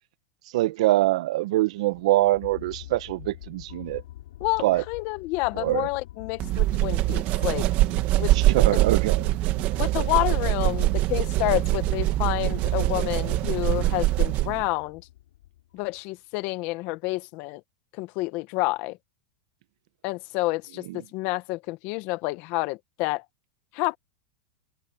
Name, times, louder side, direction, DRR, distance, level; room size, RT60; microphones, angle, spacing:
voice 1, 0.5-4.0 4.6-4.8 5.6-5.9 8.5-9.2, right 16 dB, 70° right, 1.1 m, -23 dB
sound 1, 1.9-16.0, left 14 dB, 80° left, 6.4 m, -44 dB
voice 2, 4.4-7.7 8.2-8.8 9.8-15.0 15.7-17.6 17.9-19.0 20.0-23.2 23.7-24.0, left 21 dB, 50° left, 1.2 m, -29 dB
sound 2, 6.4-14.7, right 17 dB, 40° right, 1.2 m, -23 dB
supercardioid pair, 140°, 4 cm